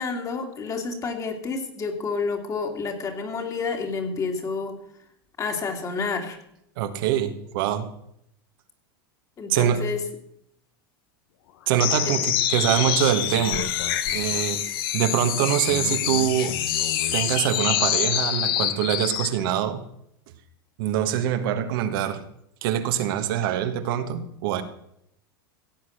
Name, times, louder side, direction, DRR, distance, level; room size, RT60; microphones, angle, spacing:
voice 1, 0.0-4.8 5.4-6.4 9.4-10.0 12.1-12.2, left 4 dB, 25° left, 4 dB, 2.5 m, -29 dB
voice 2, 6.8-7.9 9.5-9.8 11.7-13.7 14.1-14.6 14.9-16.6 17.1-19.8 20.8-22.2 22.6-24.6, right 10 dB, 65° right, 7 dB, 1.5 m, -24 dB
sound 1, 11.8-19.4, left 11 dB, 70° left, 1.3 m, -26 dB
16.0 x 8.2 x 6.5 m, 0.75 s
supercardioid pair, 120°, 12 cm